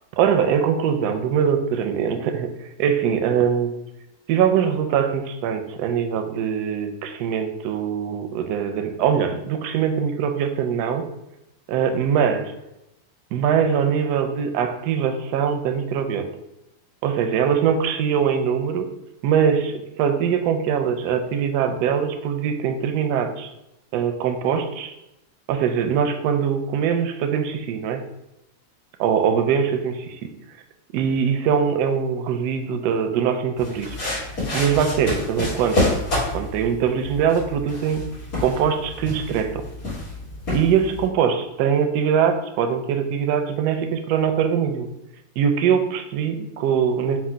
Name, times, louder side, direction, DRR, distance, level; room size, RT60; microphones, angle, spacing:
voice 1, 0.2-3.7 4.3-11.1 11.7-12.5 13.3-16.3 17.0-18.9 19.2-23.5 23.9-25.0 25.5-28.0 29.0-30.3 30.9-34.0 34.5-35.9 36.3-38.1 38.4-39.6 40.5-44.9 45.4-47.2, right 7 dB, 70° right, 6 dB, 1.0 m, -22 dB
sound 1, 33.6-41.1, left 2 dB, 50° left, 2.1 m, -28 dB
4.6 x 2.2 x 4.3 m, 0.91 s
omnidirectional pair, 2.0 m